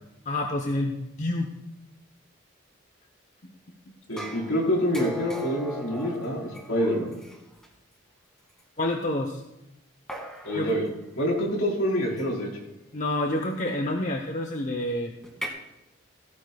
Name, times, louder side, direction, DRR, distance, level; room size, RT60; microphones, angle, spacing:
voice 1, 0.3-1.5 3.4-3.5 8.8-9.4 10.5-10.7 12.9-15.1, left 1 dB, 35° left, 3 dB, 0.9 m, -28 dB
voice 2, 4.1-7.1 10.4-10.9 11.2-12.5, equal, 90° left, -3 dB, 4.4 m, -26 dB
sound 1, 4.2-7.7 8.6-8.7 10.1-10.9 12.2-12.5 15.2-15.5, equal, 5° left, 2.1 m, -39 dB
17.0 x 14.5 x 2.4 m, 0.91 s
head